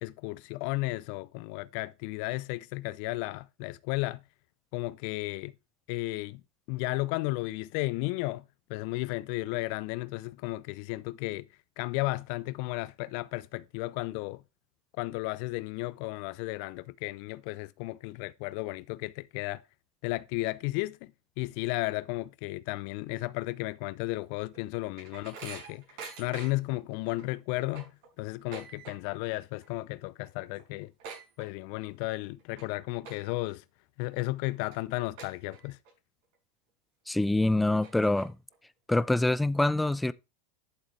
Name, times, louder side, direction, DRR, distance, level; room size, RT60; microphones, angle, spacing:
voice 1, 0.0-4.2 4.7-5.5 5.9-6.4 6.7-8.4 8.7-11.5 11.8-14.4 15.0-19.6 20.0-21.1 21.4-25.8 26.2-27.9 28.2-30.9 31.4-33.6 34.0-35.8, left 21 dB, 60° left, 0.5 m, -34 dB
sound 1, 24.3-26.8 27.2-27.3 27.6-29.3 29.5-29.9 30.2-30.3 30.5-31.9 32.4-32.6 33.0-33.5 34.0-34.1 34.7-34.8 35.2-35.9 36.3-36.4 37.2-37.3 37.6-38.5, right 5 dB, 60° right, 6.2 m, -46 dB
voice 2, 37.1-38.3 38.9-40.1, left 2 dB, 5° left, 0.5 m, -25 dB
11.5 x 7.3 x 3.2 m
hypercardioid pair, 95°, 0 cm